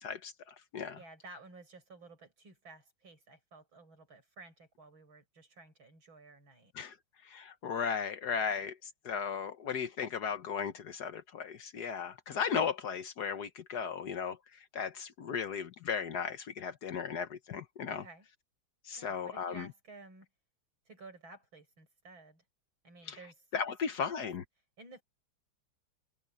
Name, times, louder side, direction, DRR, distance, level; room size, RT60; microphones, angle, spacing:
voice 1, 0.0-1.0 6.7-6.9 7.2-8.7 9.0-14.4 14.7-18.0 18.8-19.7 23.1-23.2 23.5-24.4, left 6 dB, 60° left, 1.4 m, -36 dB
voice 2, 0.9-6.7 8.5-8.7 17.9-18.3 19.0-20.3 20.9-22.4 22.8-24.2 24.8-25.0, right 3 dB, 80° right, 8.2 m, -54 dB
omnidirectional pair, 2.2 m